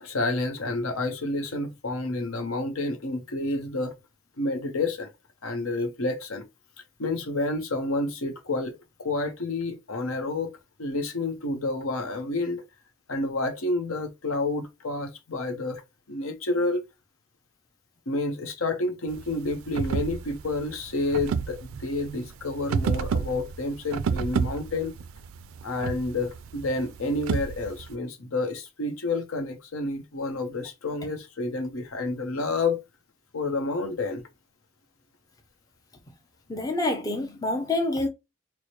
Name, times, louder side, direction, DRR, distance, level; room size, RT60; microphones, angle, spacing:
voice 1, 0.0-4.0 4.4-5.1 5.4-6.4 7.0-10.5 10.8-12.6 13.1-16.8 18.1-24.9 25.6-32.8 33.3-34.2, left 2 dB, 75° left, 0.8 m, -29 dB
sound 1, 19.1-28.0, right 6 dB, 75° right, 0.3 m, -31 dB
voice 2, 36.5-38.1, left 2 dB, 15° left, 0.5 m, -27 dB
4.5 x 2.1 x 3.0 m
head